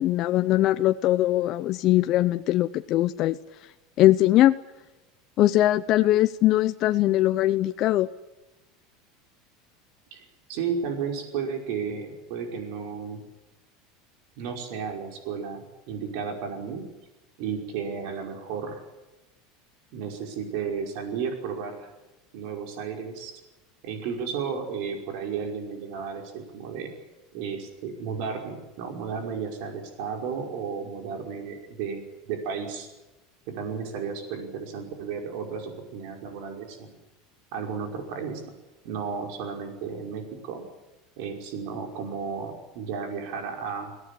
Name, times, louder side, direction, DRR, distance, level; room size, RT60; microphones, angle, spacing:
voice 1, 0.0-3.4 4.0-4.6 5.4-8.1, left 14 dB, 45° left, 10 dB, 0.7 m, -21 dB
voice 2, 10.1-13.2 14.4-16.8 17.4-18.8 19.9-21.9 22.3-23.3 23.8-26.9 27.3-32.9 33.5-37.0 37.5-38.4 38.8-40.6 41.2-44.0, right 6 dB, 65° right, 3 dB, 5.4 m, -33 dB
23.0 x 17.5 x 9.9 m, 1.0 s
supercardioid pair, 150°, 0 cm